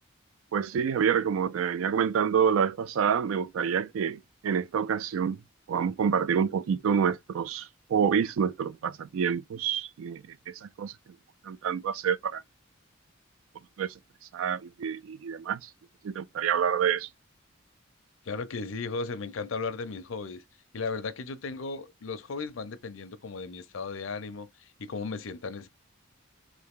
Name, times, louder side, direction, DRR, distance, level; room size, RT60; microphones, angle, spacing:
voice 1, 0.5-5.4 5.7-10.9 11.4-12.4 13.8-13.9 14.3-15.7 16.0-17.1, right 7 dB, 85° right, 0.3 m, -27 dB
voice 2, 18.2-20.4 20.7-25.7, left 4 dB, 80° left, 0.6 m, -36 dB
3.4 x 2.6 x 3.5 m
head